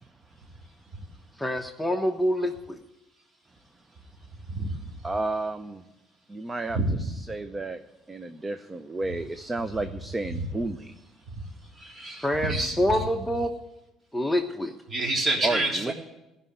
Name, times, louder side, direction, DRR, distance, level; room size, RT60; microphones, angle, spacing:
voice 1, 1.4-2.8 12.2-13.5 14.1-14.7, equal, ahead, 3 dB, 1.1 m, -26 dB
voice 2, 5.0-5.8 6.3-7.8 8.1-10.9 15.4-15.9, right 2 dB, 25° right, 9 dB, 0.8 m, -32 dB
voice 3, 11.8-12.8 14.9-15.9, right 2 dB, 40° right, 0 dB, 3.9 m, -27 dB
15.5 x 5.6 x 9.6 m, 0.97 s
supercardioid pair, 70°, 0 cm